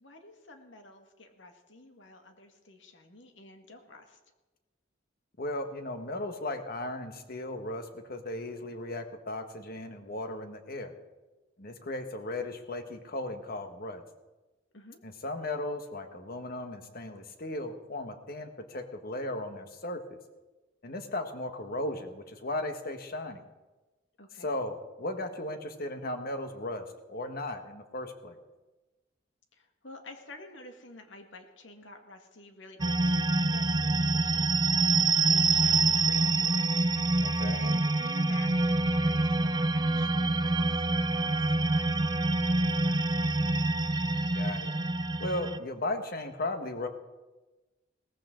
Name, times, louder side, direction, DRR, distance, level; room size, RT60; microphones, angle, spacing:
voice 1, 0.0-4.2 14.7-15.0 24.2-24.5 29.5-43.3, left 2 dB, 70° left, 5 dB, 1.9 m, -51 dB
voice 2, 5.4-10.9 11.6-14.0 15.0-20.2 20.8-23.4 24.4-28.4 37.2-37.6 44.3-44.7 45.2-46.9, left 1 dB, 55° left, 7 dB, 1.5 m, -36 dB
sound 1, 32.8-45.6, right 3 dB, 25° right, 0.5 m, -26 dB
19.0 x 14.5 x 3.9 m, 1.1 s
head